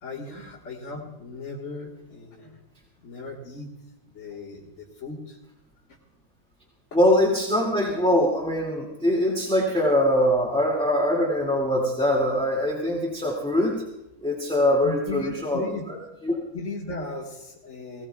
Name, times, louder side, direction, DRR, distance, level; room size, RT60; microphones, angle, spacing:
voice 1, 0.0-2.6 3.0-3.7 4.1-5.4 14.8-15.8 16.5-18.1, left 3 dB, 55° left, -5 dB, 2.1 m, -37 dB
voice 2, 6.9-13.7 14.2-16.0 16.2-16.4, left 1 dB, 5° left, -4 dB, 2.2 m, -23 dB
21.5 x 17.0 x 2.3 m, 0.91 s
omnidirectional pair, 1.5 m